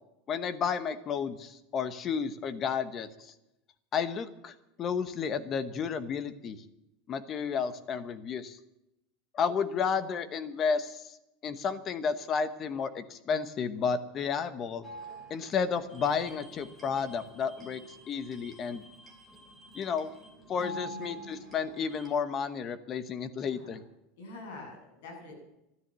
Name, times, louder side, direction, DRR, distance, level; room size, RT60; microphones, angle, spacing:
voice 1, 0.3-3.1 3.9-6.6 7.1-8.6 9.3-11.2 11.4-14.8 15.3-17.8 18.1-18.8 19.7-20.1 20.5-23.8, left 6 dB, 25° left, 13 dB, 1.0 m, -32 dB
sound 1, 14.8-22.1, right 1 dB, 10° left, 3.2 m, -47 dB
voice 2, 23.4-23.7 24.2-24.8 25.0-25.4, left 2 dB, 80° left, 2 dB, 7.9 m, -45 dB
13.5 x 12.5 x 7.5 m, 0.88 s
supercardioid pair, 175°, 0 cm